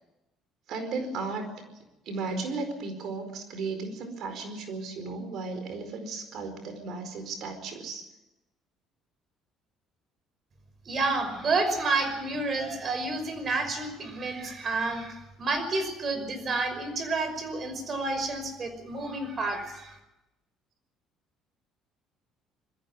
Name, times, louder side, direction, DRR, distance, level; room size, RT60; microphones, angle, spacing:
voice 1, 0.7-1.5 2.1-8.0, right 3 dB, 65° right, 8 dB, 4.7 m, -35 dB
voice 2, 10.9-19.9, right 3 dB, 40° right, 9 dB, 5.7 m, -30 dB
21.5 x 15.0 x 9.8 m, 0.98 s
supercardioid pair, 85°, 0 cm